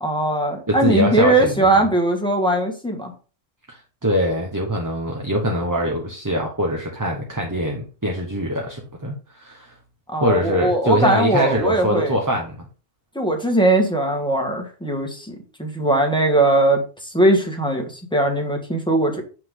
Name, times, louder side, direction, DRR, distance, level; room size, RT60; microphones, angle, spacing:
voice 1, 0.0-3.1 10.1-12.2 13.1-19.2, right 1 dB, 5° left, 3 dB, 1.5 m, -20 dB
voice 2, 0.7-1.8 3.7-9.7 10.2-12.6, equal, 15° right, 1 dB, 1.1 m, -23 dB
7.8 x 5.8 x 3.8 m, 0.35 s
omnidirectional pair, 1.2 m